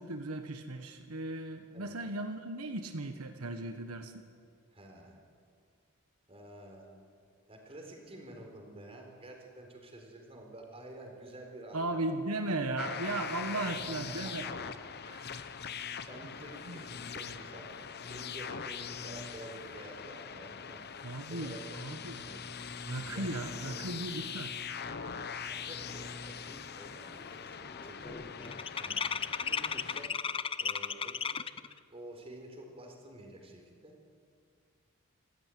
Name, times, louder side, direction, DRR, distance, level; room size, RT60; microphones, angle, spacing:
voice 1, 0.0-4.1 11.7-14.5 15.1-15.4 16.7-16.8 21.0-22.2 22.8-24.5, right 2 dB, 85° right, 6 dB, 1.3 m, -36 dB
voice 2, 4.7-5.2 6.3-7.0 7.5-12.1 13.5-14.0 14.2-14.7 16.1-17.8 18.1-21.8 22.2-22.4 22.9-23.9 25.5-28.3 28.8-29.1 29.4-30.2 30.6-31.4 31.9-34.0, right 1 dB, 25° right, 2 dB, 4.4 m, -50 dB
sound 1, 12.8-30.1, left 6 dB, 50° left, 0.9 m, -42 dB
sound 2, 26.5-26.8 27.1-31.7, left 6 dB, 25° left, 0.5 m, -35 dB
26.5 x 14.0 x 9.4 m, 2.2 s
head